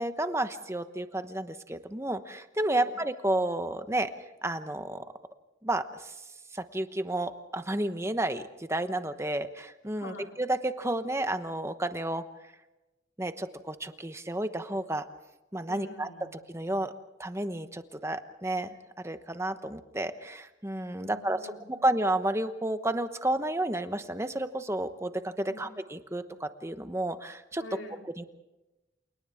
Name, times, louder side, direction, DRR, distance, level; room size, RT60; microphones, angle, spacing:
voice 1, 0.0-4.1 4.4-5.0 5.6-6.1 6.5-12.2 13.2-15.1 15.5-16.1 16.5-16.9 17.2-18.8 19.0-21.4 21.7-27.6 28.2-28.3, right 1 dB, 15° right, 9 dB, 1.0 m, -31 dB
voice 2, 10.0-10.4 15.6-16.4 21.0-21.9 25.5-25.7 27.6-28.1, left 2 dB, 80° left, 3 dB, 3.4 m, -46 dB
29.0 x 29.0 x 3.6 m, 1.0 s
head